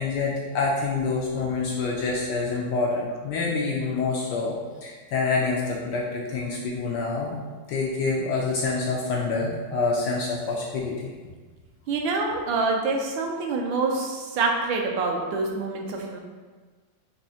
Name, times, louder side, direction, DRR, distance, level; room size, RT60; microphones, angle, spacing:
voice 1, 0.0-4.5 4.8-7.4 7.7-11.1, left 3 dB, 75° left, -2 dB, 1.0 m, -27 dB
voice 2, 11.9-16.2, right 3 dB, 75° right, 1 dB, 1.2 m, -26 dB
5.3 x 2.7 x 2.7 m, 1.4 s
omnidirectional pair, 2.3 m